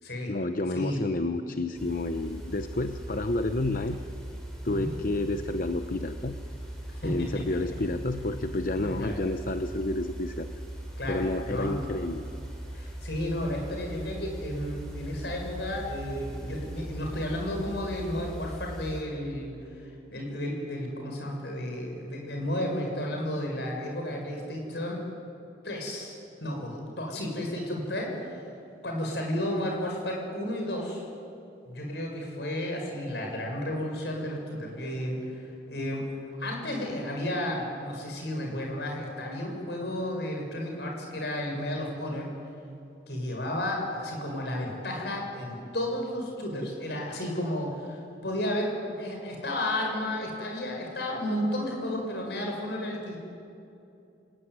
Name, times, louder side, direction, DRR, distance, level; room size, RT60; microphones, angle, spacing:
voice 1, 0.3-4.0 4.6-6.3 7.0-10.5 11.1-12.2, left 2 dB, 50° left, 8 dB, 0.8 m, -30 dB
sound 1, 1.7-19.0, right 1 dB, 5° left, 4.9 m, -40 dB
voice 2, 8.8-9.2 11.0-11.8 12.7-25.0 25.6-28.3 28.8-31.0 31.6-42.3 43.1-53.2, left 1 dB, 70° left, 1 dB, 6.3 m, -32 dB
27.0 x 19.5 x 9.7 m, 2.7 s
head